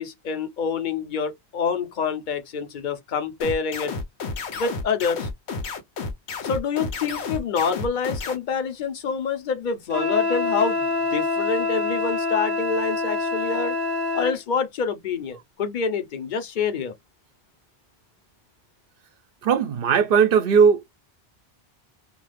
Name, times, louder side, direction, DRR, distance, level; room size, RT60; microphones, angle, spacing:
voice 1, 0.0-3.9 4.5-5.3 6.4-13.7 14.1-16.9, left 5 dB, 50° left, 0.8 m, -27 dB
sound 1, 3.4-8.4, left 4 dB, 80° left, 1.0 m, -31 dB
Wind instrument woodwind instrument, 9.9-14.4, left 3 dB, 25° right, 0.7 m, -25 dB
voice 2, 19.4-20.9, right 6 dB, 60° right, 0.7 m, -18 dB
2.5 x 2.3 x 3.2 m
omnidirectional pair, 1.1 m